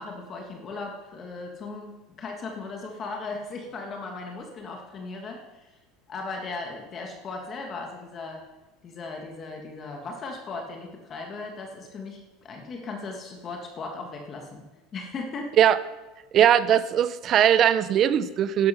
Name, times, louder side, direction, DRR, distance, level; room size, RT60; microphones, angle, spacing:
voice 1, 0.0-5.8 6.1-8.5 8.8-14.6 14.9-15.5, left 3 dB, 30° left, 2 dB, 1.4 m, -37 dB
voice 2, 16.3-18.7, right 10 dB, 35° right, 15 dB, 0.6 m, -20 dB
11.5 x 10.5 x 5.6 m, 1.1 s
cardioid pair, 155°, 0 cm